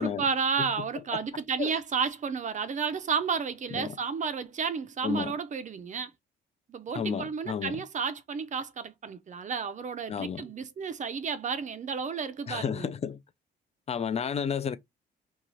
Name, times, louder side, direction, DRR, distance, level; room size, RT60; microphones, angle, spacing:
voice 1, 0.0-6.1 6.7-12.9, right 6 dB, 40° right, 0.5 m, -32 dB
voice 2, 5.0-5.4 6.9-7.8 10.1-10.4 12.5-13.2 13.9-14.8, left 7 dB, 30° left, 0.4 m, -31 dB
2.6 x 2.3 x 3.0 m
cardioid pair, 90°, 20 cm